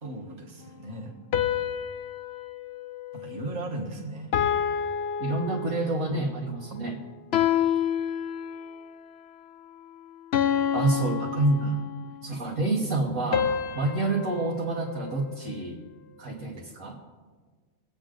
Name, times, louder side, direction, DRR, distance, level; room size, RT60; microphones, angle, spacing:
voice 1, 0.0-1.2 3.1-4.3 10.3-11.7, right 2 dB, 30° right, -3 dB, 1.5 m, -38 dB
sound 1, 1.3-3.8 4.3-6.1 7.3-8.9 10.3-12.2 13.3-15.7, left 8 dB, 60° left, 0.8 m, -29 dB
voice 2, 5.2-7.0 10.7-11.8 12.2-15.8 16.2-17.0, right 2 dB, 75° right, -3 dB, 1.8 m, -28 dB
21.5 x 8.5 x 3.8 m, 1.5 s
omnidirectional pair, 1.4 m